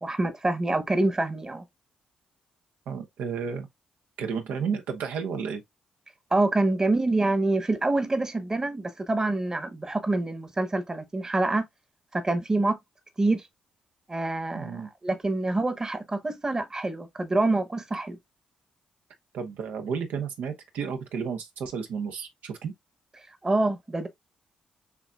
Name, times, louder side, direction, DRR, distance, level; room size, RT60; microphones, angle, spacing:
voice 1, 0.0-1.6 6.3-11.6 12.1-12.8 13.2-13.5 14.1-18.2 23.4-24.1, right 2 dB, 20° right, 1.0 m, -26 dB
voice 2, 2.9-3.7 4.2-5.6 14.5-14.9 19.3-22.7, right 6 dB, 80° right, 0.9 m, -32 dB
6.8 x 2.7 x 2.3 m
cardioid pair, 70°, 3 cm